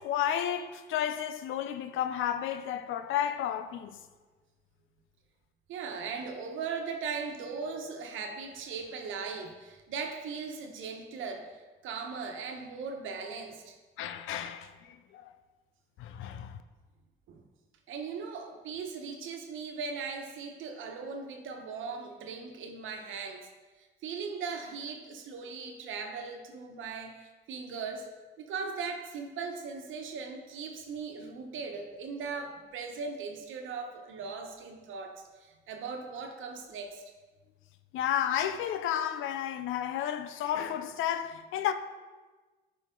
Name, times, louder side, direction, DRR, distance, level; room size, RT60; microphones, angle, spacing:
voice 1, 0.0-4.0 14.0-15.3 16.0-16.6 37.9-41.7, left 10 dB, 85° left, 0.6 m, -32 dB
voice 2, 5.7-11.5 11.8-13.7 17.3-17.4 17.9-23.5 23.8-28.1 28.4-35.1 35.4-37.0, right 5 dB, 80° right, 1.1 m, -39 dB
11.0 x 5.1 x 3.8 m
cardioid pair, 90°, 20 cm